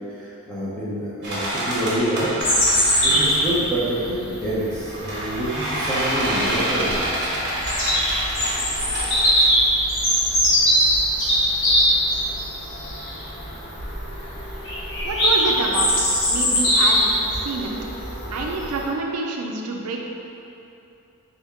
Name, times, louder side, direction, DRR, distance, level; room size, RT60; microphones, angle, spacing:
voice 1, 0.1-2.3 3.0-7.0, right 1 dB, 5° left, -11 dB, 1.0 m, -27 dB
sound 1, 1.2-3.6 4.6-10.0, right 1 dB, 50° right, 1.0 m, -27 dB
Bird vocalization bird call bird song, 2.4-18.8, equal, 60° left, 1.2 m, -22 dB
voice 2, 15.0-15.9 16.3-17.7 18.3-20.0, right 3 dB, 90° right, 0 dB, 0.5 m, -27 dB
4.3 x 2.8 x 3.6 m, 2.9 s
head